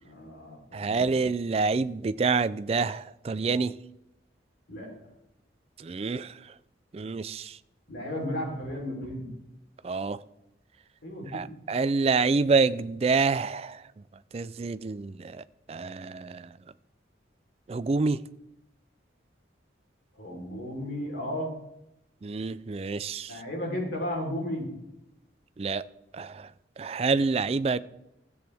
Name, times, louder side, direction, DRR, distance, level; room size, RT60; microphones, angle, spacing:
voice 1, 0.0-1.2 4.7-4.9 7.9-9.3 11.0-11.5 20.2-21.5 23.3-24.7, left 1 dB, 70° left, 3.6 m, -34 dB
voice 2, 0.7-3.7 5.8-6.3 6.9-7.5 9.8-10.2 11.3-13.8 14.3-15.1 15.7-16.4 17.7-18.2 22.2-23.3 25.6-25.8 26.1-26.3 26.8-27.8, right 4 dB, 30° right, 0.3 m, -27 dB
14.0 x 7.9 x 3.5 m
head